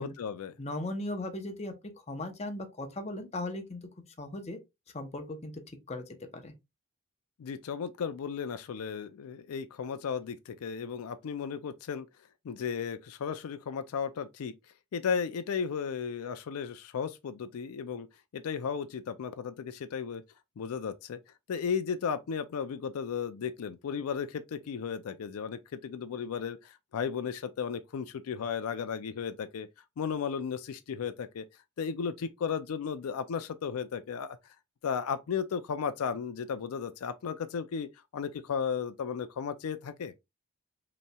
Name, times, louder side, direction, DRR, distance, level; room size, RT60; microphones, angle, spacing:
voice 1, 0.0-0.5 7.4-12.1 12.4-14.5 14.9-18.1 18.3-20.2 20.6-21.2 21.5-29.7 30.0-31.4 31.8-34.4 34.8-40.2, left 6 dB, 80° left, 0.4 m, -35 dB
voice 2, 0.6-1.7 2.1-3.8 4.2-4.6 4.9-5.5 5.9-6.0 6.3-6.5, left 1 dB, 30° left, 0.7 m, -37 dB
5.3 x 3.1 x 2.2 m
head